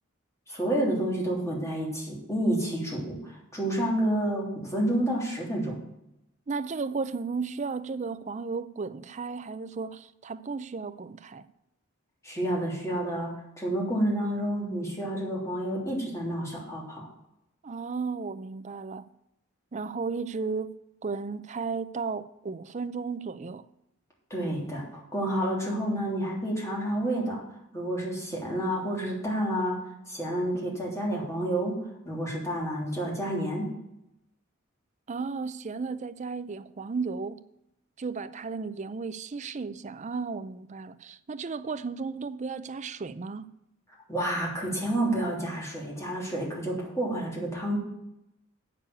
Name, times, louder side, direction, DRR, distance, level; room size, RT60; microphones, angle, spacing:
voice 1, 0.5-5.8 12.2-17.1 24.3-27.4 27.7-29.8 30.1-33.7 44.1-47.8, right 1 dB, 15° left, 3.2 m, -29 dB
voice 2, 6.5-11.5 17.6-19.1 19.7-20.8 21.0-23.6 35.1-37.4 38.0-43.5, right 4 dB, 35° right, 0.5 m, -34 dB
8.4 x 6.8 x 8.3 m
head